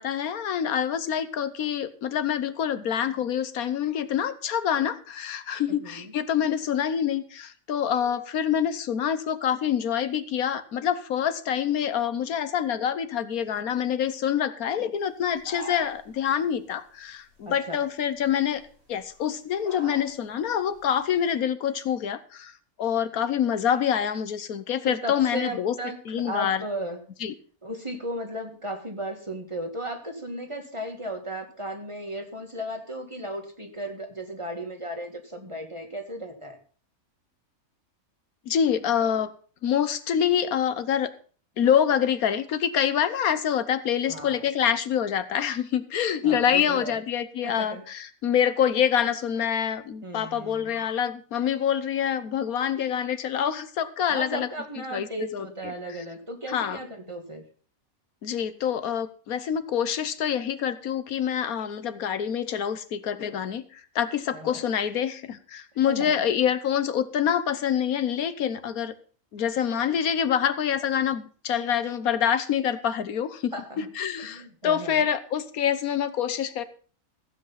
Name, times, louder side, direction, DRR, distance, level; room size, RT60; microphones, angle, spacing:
voice 1, 0.0-18.6 18.9-22.5 22.8-25.7 26.1-26.6 27.2-27.3 38.5-39.3 39.6-41.1 41.6-54.5 54.9-55.1 55.3-55.5 56.5-56.8 58.2-68.9 69.3-76.6, left 9 dB, 75° left, 13 dB, 1.3 m, -26 dB
voice 2, 5.7-6.1 17.5-17.9 24.9-27.0 27.6-36.6 44.1-44.4 46.2-47.0 47.4-47.8 50.0-50.8 54.1-57.4 64.3-64.7 65.9-66.1 73.5-73.9 74.2-75.1, right 1 dB, 20° right, 4 dB, 1.9 m, -35 dB
sound 1, 15.2-16.1 17.3-17.4 18.1-18.2 18.5-19.2 19.6-20.1 20.4-20.9, right 1 dB, 90° right, 6.4 m, -41 dB
15.0 x 8.1 x 5.6 m, 0.41 s
omnidirectional pair, 1.5 m